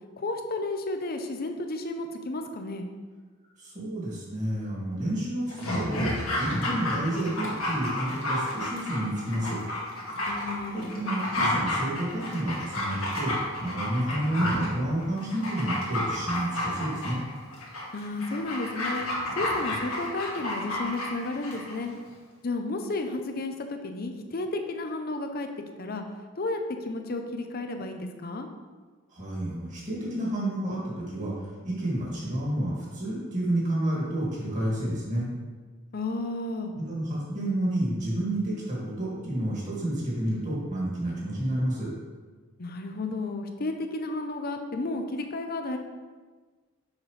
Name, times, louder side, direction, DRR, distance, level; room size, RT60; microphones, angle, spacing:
voice 1, 0.2-2.9 10.3-10.9 17.9-19.1 19.4-21.9 22.4-25.5 25.8-26.0 26.4-28.5 35.9-36.7 42.6-45.8, left 2 dB, 45° left, 5 dB, 0.6 m, -32 dB
voice 2, 3.6-9.6 10.7-17.2 29.1-35.3 36.8-41.9, right 1 dB, 35° right, -6 dB, 2.2 m, -30 dB
Dog, 5.5-21.8 22.1-22.2, left 1 dB, 70° left, 1.8 m, -31 dB
7.2 x 5.8 x 3.3 m, 1.4 s
head